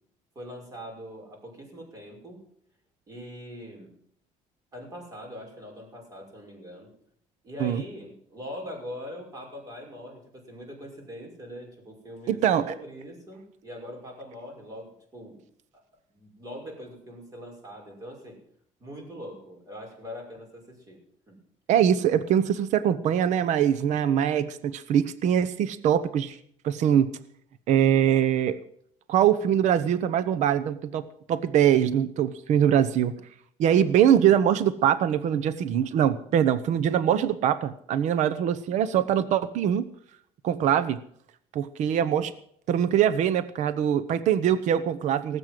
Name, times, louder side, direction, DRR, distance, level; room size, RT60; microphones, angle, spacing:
voice 1, 0.4-2.4 3.1-3.9 4.7-6.9 7.4-15.4 16.1-18.4 18.8-21.0 21.3-21.4, equal, 25° right, 0 dB, 5.8 m, -42 dB
voice 2, 12.3-12.6 21.7-26.4 26.6-27.1 27.7-28.6 29.1-31.0 31.3-33.1 33.6-39.8 40.4-41.0 41.5-42.3 42.7-45.4, right 9 dB, 60° right, 14 dB, 0.9 m, -23 dB
18.5 x 8.1 x 7.7 m, 0.65 s
cardioid pair, 150°, 14 cm